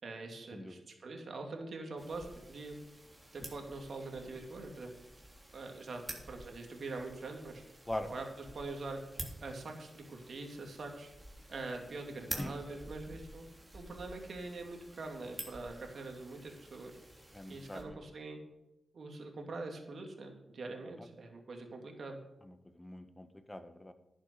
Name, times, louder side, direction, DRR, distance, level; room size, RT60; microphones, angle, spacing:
voice 1, 0.0-2.8 3.3-4.9 5.5-7.6 8.0-9.0 9.4-11.1 11.5-13.4 13.7-16.9 17.5-18.4 18.9-22.2, right 3 dB, 65° right, 3 dB, 2.6 m, -44 dB
sound 1, 2.0-17.8, right 1 dB, 15° right, 3.1 m, -50 dB
voice 2, 17.3-17.8 22.8-23.9, left 1 dB, 15° left, 9 dB, 1.4 m, -41 dB
11.0 x 7.3 x 6.6 m, 0.95 s
cardioid pair, 55°, 0 cm